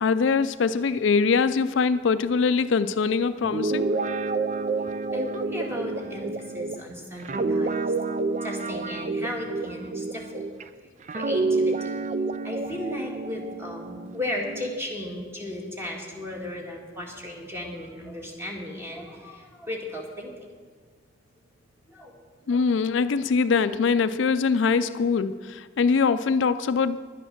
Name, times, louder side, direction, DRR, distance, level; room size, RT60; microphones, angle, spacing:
voice 1, 0.0-3.9 22.5-27.0, left 5 dB, 70° left, 12 dB, 0.4 m, -23 dB
Guitar, 3.4-10.6 11.1-14.8, right 3 dB, 40° right, 0.4 m, -29 dB
voice 2, 4.7-10.5 10.8-11.9 12.4-20.3 21.9-22.1 22.5-22.7, left 1 dB, 15° right, 0 dB, 1.8 m, -36 dB
10.5 x 8.6 x 6.6 m, 1.5 s
head